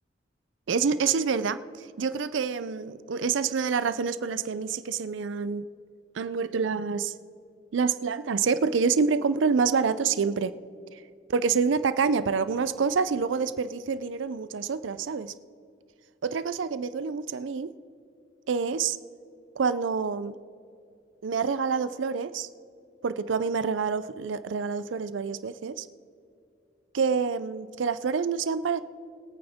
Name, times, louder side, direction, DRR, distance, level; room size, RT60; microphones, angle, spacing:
voice 1, 0.7-5.7 6.1-7.1 7.7-10.5 10.9-11.0 11.3-15.3 16.2-17.7 18.5-19.0 19.6-20.4 21.2-22.5 23.0-25.9 26.9-28.8, right 5 dB, 90° right, 14 dB, 0.5 m, -27 dB
22.5 x 8.9 x 3.5 m, 2.4 s
head